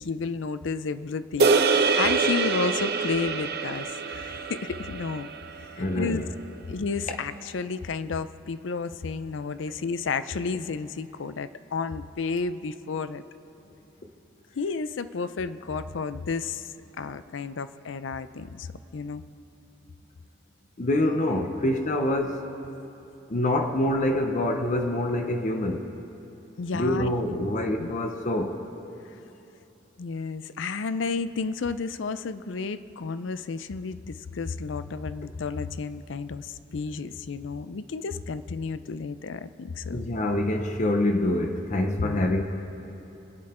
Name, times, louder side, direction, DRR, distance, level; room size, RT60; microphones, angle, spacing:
voice 1, 0.0-5.3 6.0-6.2 6.7-13.2 14.6-16.7 17.0-18.7 18.9-19.2 26.6-27.5 27.8-27.9 30.0-40.0 42.0-42.3, left 4 dB, 80° left, 13 dB, 0.5 m, -32 dB
sound 1, 1.4-5.9, right 4 dB, 55° right, 0.7 m, -25 dB
voice 2, 5.8-6.3 20.8-22.4 23.3-25.9 26.7-28.6 39.9-42.4, left 1 dB, 40° left, 4 dB, 0.8 m, -26 dB
26.0 x 8.7 x 4.4 m, 2.9 s
head